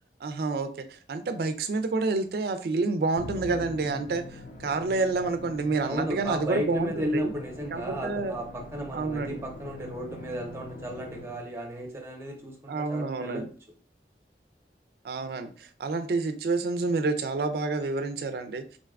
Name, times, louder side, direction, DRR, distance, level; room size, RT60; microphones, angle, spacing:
voice 1, 0.2-7.3 7.7-8.4 8.9-9.4 12.7-13.5 15.0-18.6, right 3 dB, 60° right, 9 dB, 0.3 m, -29 dB
Musical instrument, 3.2-11.7, left 2 dB, 40° left, 0.4 m, -43 dB
voice 2, 5.9-13.5, equal, 15° right, 1 dB, 0.6 m, -34 dB
3.8 x 2.2 x 2.3 m, 0.42 s
head